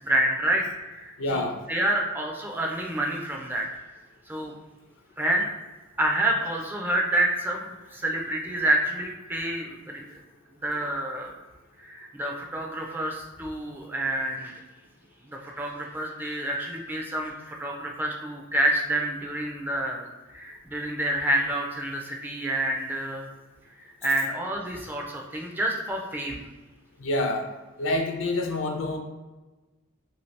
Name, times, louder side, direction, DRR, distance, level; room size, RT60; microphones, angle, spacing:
voice 1, 0.0-3.7 4.3-4.5 5.2-5.5 6.0-10.0 10.6-11.3 11.8-14.5 15.3-23.3 24.0-26.4, right 1 dB, 10° right, 0 dB, 0.3 m, -28 dB
voice 2, 1.2-1.6 27.0-27.5 27.8-29.0, left 2 dB, 65° left, 3 dB, 0.5 m, -27 dB
2.7 x 2.7 x 3.2 m, 1.2 s
head